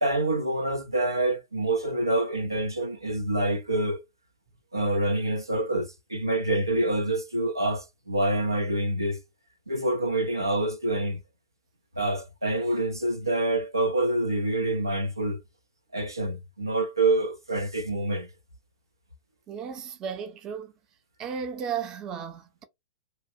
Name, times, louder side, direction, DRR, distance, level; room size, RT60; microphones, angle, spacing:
voice 1, 0.0-4.0 4.7-9.2 9.7-11.2 12.0-15.4 15.9-18.3, right 2 dB, 90° right, 0.5 m, -26 dB
voice 2, 19.5-20.7 21.2-22.6, right 7 dB, 30° right, 0.6 m, -34 dB
2.7 x 2.4 x 2.6 m
figure-of-eight pair, 100°, 2 cm